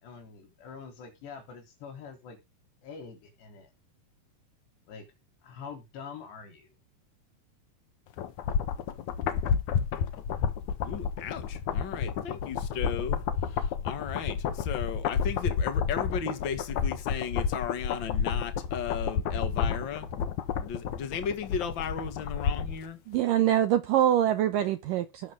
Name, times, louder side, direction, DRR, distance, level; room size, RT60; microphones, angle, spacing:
voice 1, 0.0-2.4 2.8-3.7 4.9-5.1 5.4-6.7, left 6 dB, 85° left, 5.7 m, -45 dB
sound 1, 8.2-22.9 23.1-23.2, left 7 dB, 65° left, 2.1 m, -30 dB
voice 2, 10.8-13.2 13.5-20.1 20.6-23.0, left 7 dB, 45° left, 1.7 m, -36 dB
voice 3, 23.1-25.3, right 11 dB, 80° right, 2.0 m, -24 dB
19.0 x 7.4 x 3.7 m
omnidirectional pair, 4.8 m